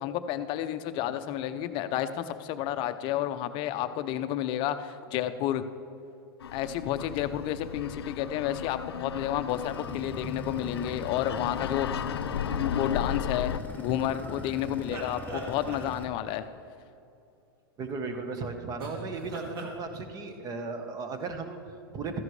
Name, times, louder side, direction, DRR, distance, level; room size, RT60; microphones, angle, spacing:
voice 1, 0.0-5.7 6.5-12.0 12.5-16.5, left 11 dB, 40° left, 11 dB, 0.6 m, -31 dB
sound 1, 6.4-13.6, left 8 dB, 85° left, 0.4 m, -35 dB
sound 2, 9.5-16.1, left 2 dB, 15° left, 0.8 m, -41 dB
sound 3, 13.6-16.4 18.8-19.7, right 2 dB, 70° right, 2.2 m, -42 dB
voice 2, 17.8-22.2, right 4 dB, 30° right, 7 dB, 1.2 m, -36 dB
14.0 x 10.5 x 3.2 m, 2.7 s
hypercardioid pair, 115°, 13 cm